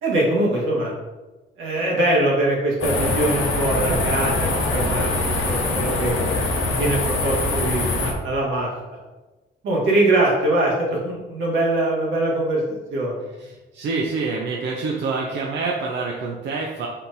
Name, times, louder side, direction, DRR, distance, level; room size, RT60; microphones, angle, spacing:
voice 1, 0.0-0.9 1.6-6.1 6.8-8.7 9.6-12.6 12.9-13.1, right 1 dB, 85° right, -4 dB, 1.5 m, -22 dB
sound 1, 2.8-8.1, left 2 dB, 90° left, 0.9 m, -23 dB
voice 2, 13.4-16.9, right 4 dB, 60° right, -1 dB, 0.6 m, -27 dB
4.4 x 3.8 x 2.6 m, 1.2 s
cardioid pair, 90°, 20 cm